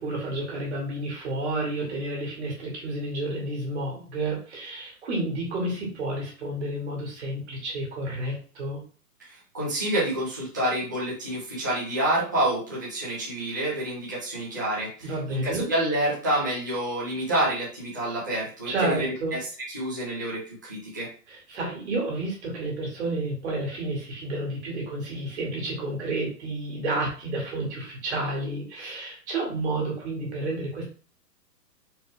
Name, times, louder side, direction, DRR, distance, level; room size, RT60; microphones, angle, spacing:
voice 1, 0.0-8.8 15.0-15.7 18.7-19.4 21.3-30.8, right 2 dB, 45° right, -2 dB, 2.1 m, -30 dB
voice 2, 9.2-21.1, right 1 dB, 15° right, -8 dB, 0.5 m, -28 dB
4.3 x 3.2 x 3.3 m, 0.39 s
hypercardioid pair, 170°, 48 cm